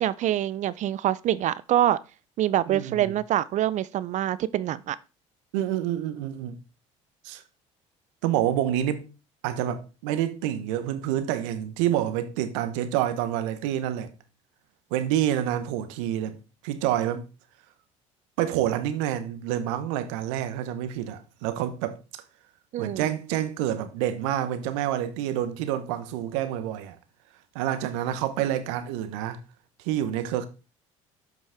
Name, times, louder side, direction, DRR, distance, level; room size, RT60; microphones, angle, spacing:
voice 1, 0.0-2.0 2.4-5.0 22.7-23.1, right 12 dB, 50° right, 0.4 m, -25 dB
voice 2, 2.7-3.2 5.5-6.6 7.2-7.4 8.2-9.1 9.4-14.1 14.9-16.4 16.6-17.2 18.4-22.2 22.8-27.0 27.5-29.4 29.8-30.4, right 11 dB, 75° right, 0.9 m, -28 dB
7.8 x 5.5 x 3.4 m
hypercardioid pair, 65°, 16 cm